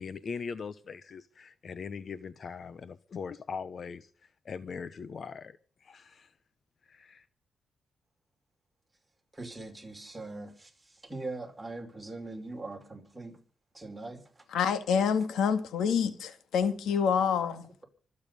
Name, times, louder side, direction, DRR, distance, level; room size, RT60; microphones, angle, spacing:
voice 1, 0.0-6.3 6.8-7.3, left 5 dB, 45° left, 0.7 m, -41 dB
voice 2, 9.3-13.4 13.7-14.4, right 2 dB, 10° right, 5.3 m, -41 dB
voice 3, 14.5-17.8, left 7 dB, 90° left, 1.8 m, -27 dB
25.0 x 8.7 x 5.4 m
cardioid pair, 110°, 0 cm